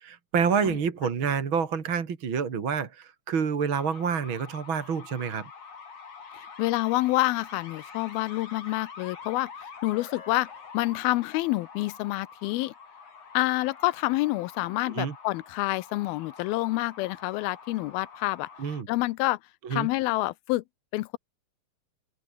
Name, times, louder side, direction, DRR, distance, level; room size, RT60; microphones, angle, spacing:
voice 1, 0.0-5.5 14.9-15.1 18.6-18.9 19.6-19.9, right 6 dB, 40° right, 2.4 m, -28 dB
sound 1, 3.7-18.8, left 5 dB, 50° left, 5.4 m, -46 dB
voice 2, 6.3-9.5 9.8-10.5 10.7-12.7 13.3-18.5 18.9-19.4 19.7-20.6 20.9-21.2, left 19 dB, 85° left, 2.5 m, -27 dB
omnidirectional pair, 4.3 m